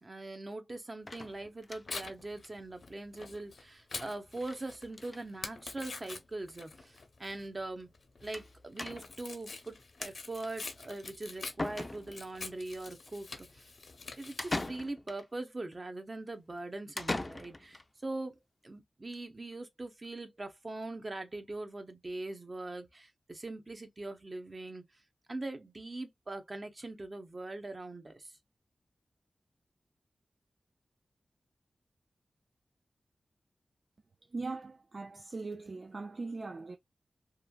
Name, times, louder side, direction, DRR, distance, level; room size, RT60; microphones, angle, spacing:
voice 1, 0.0-7.9 8.2-13.7 14.2-24.8 25.3-28.3, right 2 dB, 35° right, 0.8 m, -42 dB
Tearing, 1.1-14.7, left 4 dB, 70° left, 0.7 m, -46 dB
sound 1, 1.1-2.1 2.4-2.5 2.8-2.9 3.1-3.2 4.4-4.6 4.9-5.3 6.1-6.2 6.5-6.6 8.3-8.5 8.8-9.3 11.1-11.2 11.6-12.4 14.4-15.3 17.0-17.8, left 2 dB, 30° left, 0.5 m, -39 dB
voice 2, 34.2-36.8, right 3 dB, 50° right, 0.4 m, -40 dB
3.1 x 2.4 x 2.2 m
wide cardioid pair, 70°, 0 cm